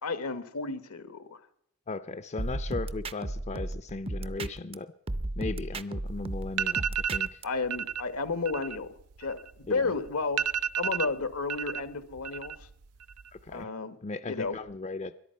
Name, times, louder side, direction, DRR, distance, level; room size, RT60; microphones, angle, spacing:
voice 1, 0.0-1.4 7.4-10.4 10.8-12.7 13.5-14.0 14.3-14.6, left 4 dB, 80° left, 13 dB, 1.2 m, -32 dB
voice 2, 1.9-4.9 5.4-6.8 7.1-7.4 9.7-9.9 13.3-13.7 14.0-15.1, left 3 dB, 30° left, 14 dB, 0.5 m, -37 dB
sound 1, 2.4-4.7 5.1-7.4, right 1 dB, 25° right, 0.5 m, -34 dB
sound 2, 6.1-6.2 6.5-7.3 7.7-8.0 8.3-9.8 10.1-10.2 10.4-11.8 12.1-12.7 13.0-13.5, right 8 dB, 85° right, 0.5 m, -31 dB
21.5 x 11.0 x 5.6 m, 0.79 s
head